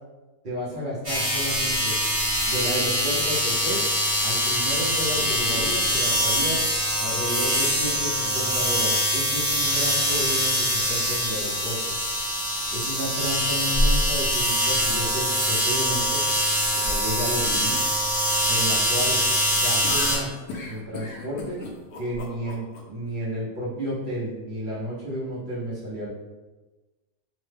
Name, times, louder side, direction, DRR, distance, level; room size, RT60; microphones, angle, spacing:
voice 1, 0.4-2.0 2.5-3.8 4.2-6.6 7.0-11.8 12.7-16.2 16.7-17.8 18.5-19.2 19.5-20.3 20.6-21.6 22.0-26.1, equal, 85° right, -8 dB, 0.4 m, -32 dB
sound 1, 1.0-20.2, equal, 25° right, 0.5 m, -24 dB
sound 2, 19.8-22.8, left 3 dB, 70° left, 1.0 m, -36 dB
3.1 x 2.1 x 3.3 m, 1.2 s
omnidirectional pair, 2.0 m